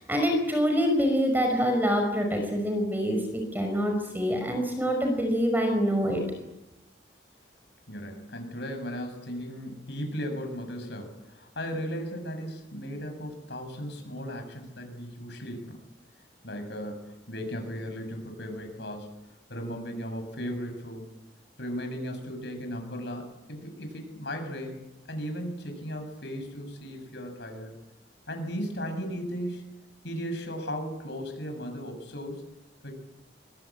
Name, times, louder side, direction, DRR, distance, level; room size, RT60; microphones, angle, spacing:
voice 1, 0.0-6.2, equal, 10° right, 4 dB, 5.5 m, -25 dB
voice 2, 7.9-15.8 16.4-19.1 19.5-21.1 21.6-24.8 25.1-27.7 28.3-29.8 30.0-32.4 32.8-32.9, equal, 70° left, 5 dB, 7.4 m, -36 dB
24.0 x 23.5 x 8.9 m, 0.97 s
head